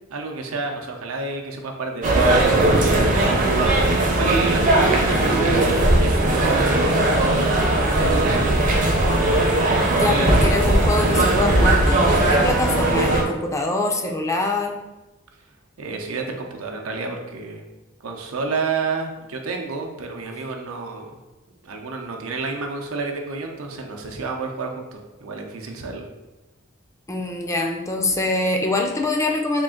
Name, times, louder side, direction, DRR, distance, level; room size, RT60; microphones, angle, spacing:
voice 1, 0.1-3.4 4.0-7.5 7.8-8.8 15.8-17.7 18.0-21.1 21.6-26.0, right 4 dB, 90° right, 2 dB, 0.6 m, -30 dB
sound 1, 2.0-13.2, right 2 dB, 40° right, 0.6 m, -18 dB
voice 2, 9.9-14.7 27.1-29.6, left 2 dB, 15° left, 2 dB, 0.4 m, -24 dB
3.7 x 2.4 x 3.7 m, 1.0 s
head